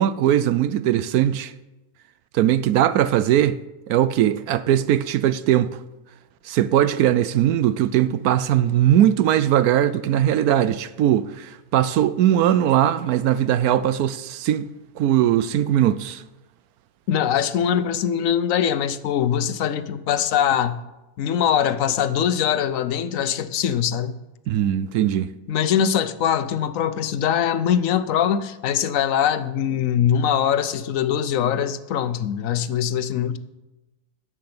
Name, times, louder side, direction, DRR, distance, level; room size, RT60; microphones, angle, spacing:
voice 1, 0.0-1.5 2.3-3.6 3.9-5.8 6.4-14.7 15.0-16.2 24.5-25.3, right 11 dB, 75° right, 1.0 m, -20 dB
voice 2, 17.1-20.8 21.2-24.2 25.5-33.4, left 9 dB, 65° left, 1.0 m, -22 dB
10.5 x 7.7 x 7.8 m
omnidirectional pair, 1.7 m